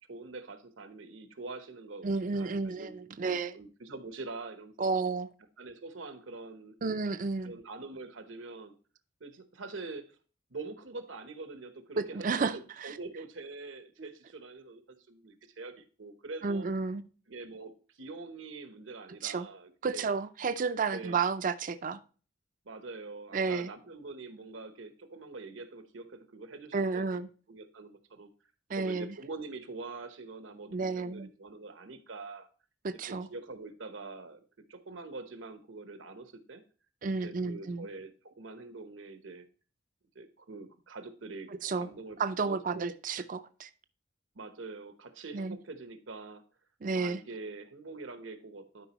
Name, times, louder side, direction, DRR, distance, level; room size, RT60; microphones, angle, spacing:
voice 1, 0.1-2.9 3.2-4.9 5.6-6.8 7.4-8.7 9.2-10.2 10.5-16.7 17.3-20.1 20.9-21.2 22.6-27.2 27.5-28.3 28.8-32.5 32.9-34.4 34.7-36.6 37.2-39.5 40.1-41.5 41.7-42.2 42.4-42.9 44.3-46.4 46.9-48.9, right 3 dB, 80° right, 8 dB, 1.0 m, -44 dB
voice 2, 2.0-3.6 4.8-5.3 6.8-7.5 12.0-13.0 16.4-17.0 19.2-19.5 19.8-22.0 23.3-23.7 26.7-27.3 28.7-29.1 30.7-31.3 32.8-33.3 37.0-37.9 41.6-41.9 42.2-43.7 45.3-45.6 46.8-47.2, right 4 dB, 45° right, 11 dB, 0.4 m, -32 dB
11.5 x 5.1 x 3.0 m, 0.38 s
head